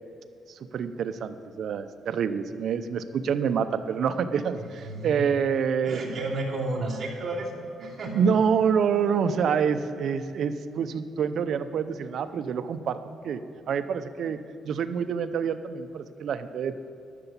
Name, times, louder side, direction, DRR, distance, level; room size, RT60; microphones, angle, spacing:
voice 1, 0.5-6.0 7.8-14.4 14.6-16.7, right 7 dB, 60° right, 10 dB, 0.6 m, -27 dB
voice 2, 4.5-5.3 5.8-8.2, right 2 dB, 40° right, -5 dB, 2.8 m, -32 dB
12.0 x 6.9 x 7.2 m, 2.5 s
cardioid pair, 125°, 0 cm